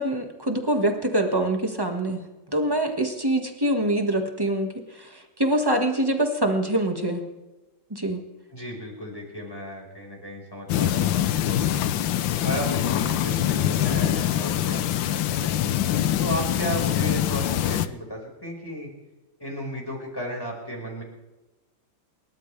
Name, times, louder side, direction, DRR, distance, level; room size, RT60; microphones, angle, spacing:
voice 1, 0.0-2.2 2.5-7.2 7.9-8.2, right 1 dB, 10° right, 4 dB, 1.6 m, -24 dB
voice 2, 8.5-15.7 16.2-18.9 19.4-21.0, equal, 10° left, -1 dB, 5.1 m, -34 dB
sound 1, 10.7-17.9, left 11 dB, 70° left, 1.4 m, -24 dB
29.0 x 13.5 x 3.4 m, 1.1 s
omnidirectional pair, 2.4 m